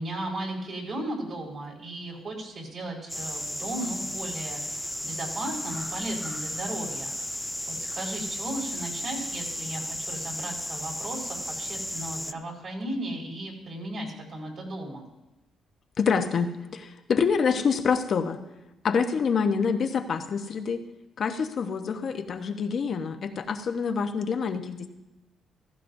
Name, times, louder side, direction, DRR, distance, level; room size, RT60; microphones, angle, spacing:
voice 1, 0.0-15.1, right 1 dB, 55° right, -1 dB, 4.4 m, -36 dB
sound 1, 3.1-12.3, left 1 dB, 5° left, 0.5 m, -34 dB
voice 2, 16.0-18.4 18.8-20.8 21.2-24.9, left 5 dB, 55° left, 6 dB, 1.0 m, -26 dB
15.5 x 15.0 x 2.7 m, 1.0 s
cardioid pair, 90°, 0 cm